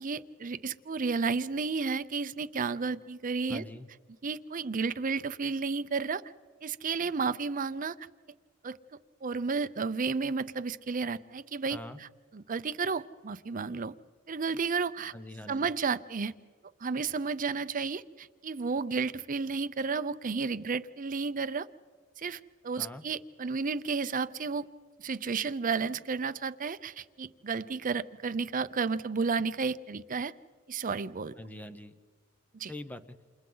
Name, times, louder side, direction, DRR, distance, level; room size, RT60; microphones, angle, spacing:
voice 1, 0.0-3.6 4.2-6.2 6.6-8.0 8.6-8.8 9.2-13.9 14.3-15.1 15.5-16.3 16.8-21.7 22.2-24.7 25.0-30.3 30.7-31.3 32.5-32.7, right 4 dB, 40° right, 13 dB, 0.6 m, -32 dB
voice 2, 3.5-3.9 11.7-12.0 15.1-15.7 22.8-23.0 31.4-31.9 32.7-33.2, left 1 dB, 10° left, 10 dB, 0.8 m, -43 dB
29.0 x 28.5 x 3.9 m, 1.5 s
head